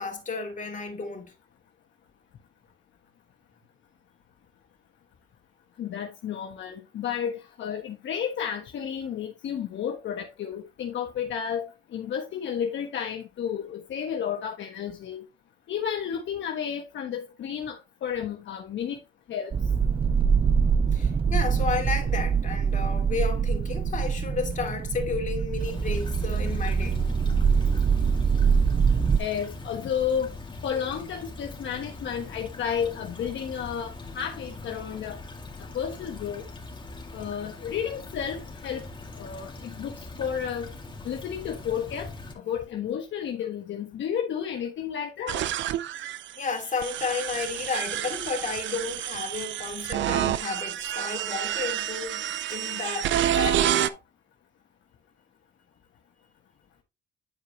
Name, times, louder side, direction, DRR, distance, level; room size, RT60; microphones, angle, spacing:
voice 1, 0.0-1.3 20.9-27.0 46.4-52.2 52.5-54.0, left 4 dB, 40° left, 2.6 m, -32 dB
voice 2, 5.8-11.6 11.9-15.2 15.7-17.8 18.0-19.0 19.3-19.5 29.2-30.3 30.6-35.2 35.7-36.4 37.1-38.8 39.2-40.7 41.0-42.1 42.5-45.4, left 8 dB, 70° left, 1.3 m, -32 dB
sound 1, 19.5-29.2, right 6 dB, 25° right, 0.5 m, -24 dB
Stream / Trickle dribble, 25.6-42.3, left 3 dB, 25° left, 2.1 m, -42 dB
sound 2, 45.3-53.9, right 11 dB, 70° right, 0.6 m, -28 dB
10.0 x 4.7 x 2.9 m
cardioid pair, 90°, 20 cm